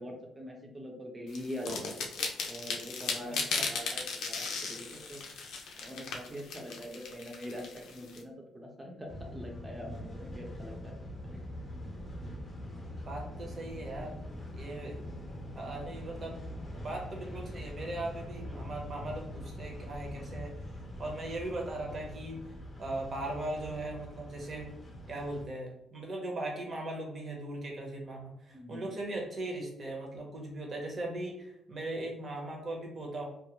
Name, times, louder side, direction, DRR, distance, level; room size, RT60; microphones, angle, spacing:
voice 1, 0.0-2.0 2.5-5.2 5.8-11.0 11.3-11.5 28.5-28.9, equal, 15° right, 0 dB, 0.7 m, -43 dB
sound 1, 1.3-8.2, left 4 dB, 85° left, 0.5 m, -36 dB
voice 2, 3.3-3.7 12.2-12.4 13.1-14.1 14.5-15.0 15.5-16.4 16.7-20.5 21.0-22.5 22.8-24.7 25.1-33.2, right 2 dB, 45° right, 0 dB, 0.9 m, -39 dB
sound 2, 9.1-25.5, left 1 dB, 30° left, 0.6 m, -43 dB
2.3 x 2.1 x 3.0 m, 0.80 s
cardioid pair, 90°, 0 cm